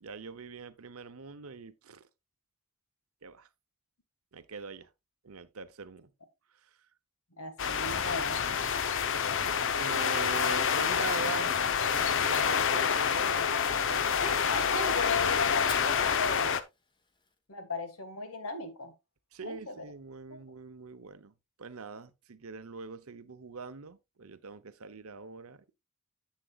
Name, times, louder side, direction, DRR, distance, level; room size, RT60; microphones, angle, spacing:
voice 1, 0.0-2.0 3.2-3.5 4.3-4.9 5.2-6.1 9.8-11.5 11.8-14.2 19.3-25.7, right 4 dB, 70° right, 0.8 m, -42 dB
voice 2, 7.4-8.4 14.2-16.6 17.5-18.9 19.4-19.8 20.3-20.4, left 3 dB, 80° left, 1.8 m, -36 dB
sound 1, 7.6-16.6, left 7 dB, 60° left, 0.9 m, -28 dB
Fire, 15.5-17.5, left 4 dB, 20° left, 1.2 m, -49 dB
10.0 x 8.2 x 2.4 m
head